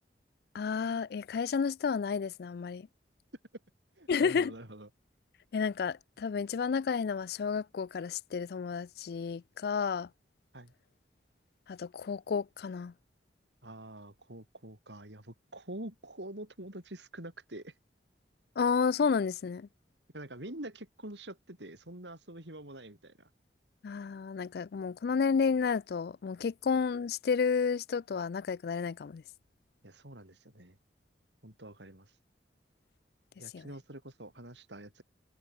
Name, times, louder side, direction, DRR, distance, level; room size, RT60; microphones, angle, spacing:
voice 1, 0.5-2.9 4.1-4.5 5.5-10.1 11.7-12.9 18.6-19.7 23.8-29.2 33.5-33.7, left 5 dB, 60° left, 0.4 m, -31 dB
voice 2, 4.0-4.9 10.5-10.7 13.6-17.7 20.1-23.3 29.8-30.8 31.4-32.1 33.4-35.0, right 1 dB, 90° right, 6.3 m, -46 dB
head